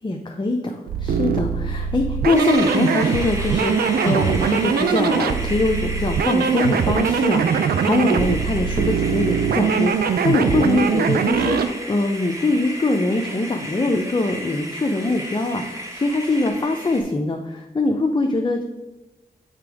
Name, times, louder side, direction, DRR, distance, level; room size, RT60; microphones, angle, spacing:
voice 1, 0.0-18.6, left 2 dB, 30° left, 3 dB, 0.6 m, -23 dB
sound 1, 0.9-11.7, right 6 dB, 80° right, 0.4 m, -21 dB
sound 2, 2.3-17.0, equal, 20° right, 1.4 m, -33 dB
6.6 x 3.5 x 4.9 m, 1.1 s
cardioid pair, 50°, 16 cm